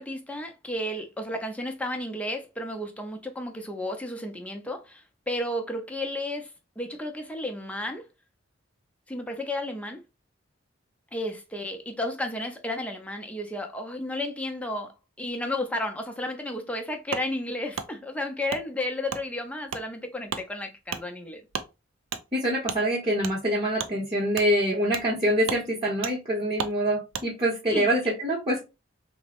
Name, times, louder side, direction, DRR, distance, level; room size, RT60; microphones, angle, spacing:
voice 1, 0.0-8.1 9.1-10.0 11.1-21.4 27.7-27.9, left 1 dB, 5° left, 0.5 m, -33 dB
Wood, 17.1-17.3 17.7-17.9 18.5-18.6 19.1-19.2 19.7-19.8 20.3-20.4 20.9-21.0 21.5-21.7 22.1-22.2 22.7-22.8 23.2-23.3 23.8-23.9 24.3-24.5 24.9-25.1 25.4-25.6 26.0-26.1 26.6-26.7 27.1-27.3, right 6 dB, 85° right, 0.4 m, -33 dB
voice 2, 22.3-28.6, equal, 25° right, 0.8 m, -25 dB
3.3 x 2.0 x 2.8 m
head